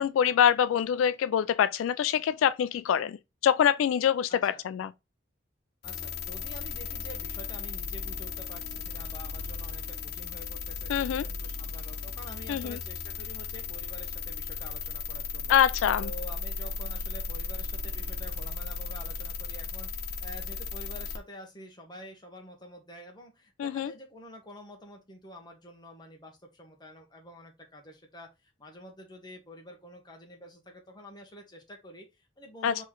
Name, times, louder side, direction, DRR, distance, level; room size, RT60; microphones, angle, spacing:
voice 1, 0.0-3.2 3.4-4.9 10.9-11.2 12.5-12.8 15.5-16.1 23.6-23.9 32.6-32.8, left 9 dB, 90° left, 0.3 m, -25 dB
voice 2, 4.3-4.6 5.8-15.6 16.0-32.8, equal, 20° left, 1.1 m, -48 dB
sound 1, 5.8-21.2, left 4 dB, 55° left, 0.7 m, -36 dB
4.1 x 3.1 x 3.7 m
head